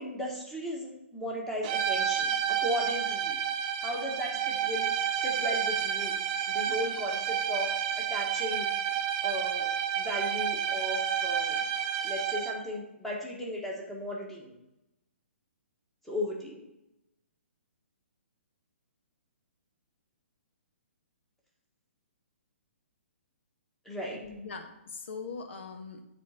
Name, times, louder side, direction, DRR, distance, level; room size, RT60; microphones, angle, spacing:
voice 1, 0.0-2.3 2.6-3.4 3.8-4.9 5.2-6.1 6.5-7.7 8.0-8.7 9.2-11.6 12.0-14.5 16.0-16.6 23.8-24.2, equal, 5° left, -3 dB, 1.4 m, -36 dB
sound 1, 1.6-12.7, right 8 dB, 30° right, 0.6 m, -30 dB
voice 2, 24.2-26.0, left 4 dB, 65° left, 6 dB, 1.2 m, -41 dB
7.5 x 4.1 x 5.5 m, 0.91 s
hypercardioid pair, 155°, 7 cm